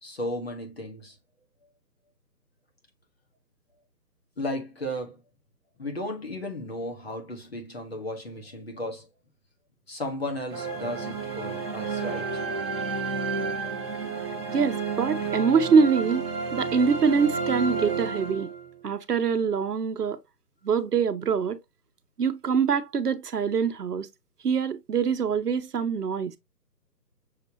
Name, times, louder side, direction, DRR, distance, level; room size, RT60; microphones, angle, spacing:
voice 1, 0.0-1.2 4.4-5.2 5.8-9.1 9.9-12.4, left 1 dB, 40° left, 1.2 m, -34 dB
sound 1, 10.5-18.9, right 5 dB, 15° right, 1.1 m, -31 dB
voice 2, 14.5-18.5 18.8-20.2 20.6-21.6 22.2-24.1 24.4-26.3, right 6 dB, 65° right, 0.8 m, -24 dB
6.6 x 2.9 x 2.7 m
hypercardioid pair, 175°, 50 cm